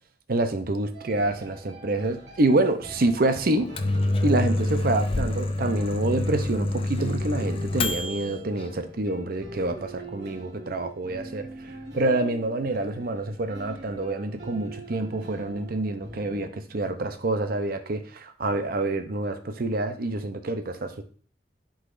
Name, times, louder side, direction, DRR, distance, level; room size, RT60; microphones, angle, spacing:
voice 1, 0.3-3.7 4.2-11.5 11.9-21.0, right 2 dB, 55° right, 8 dB, 0.7 m, -27 dB
sound 1, 0.9-16.5, right 1 dB, 70° right, 2.0 m, -43 dB
Microwave oven, 3.5-8.3, left 2 dB, 30° left, 0.5 m, -27 dB
11.0 x 3.9 x 2.6 m, 0.42 s
head